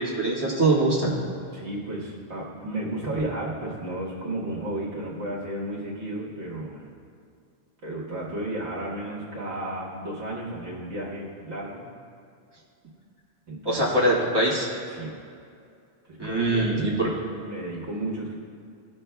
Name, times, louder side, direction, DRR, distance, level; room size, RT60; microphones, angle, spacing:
voice 1, 0.2-1.1 13.6-14.7 16.2-17.1, right 2 dB, 20° right, -7 dB, 1.9 m, -23 dB
voice 2, 1.5-6.8 7.8-11.8 13.5-13.9 14.9-15.2 16.1-16.6 17.4-18.3, right 1 dB, 70° right, -5 dB, 1.7 m, -33 dB
18.0 x 6.2 x 2.3 m, 2.4 s
omnidirectional pair, 1.2 m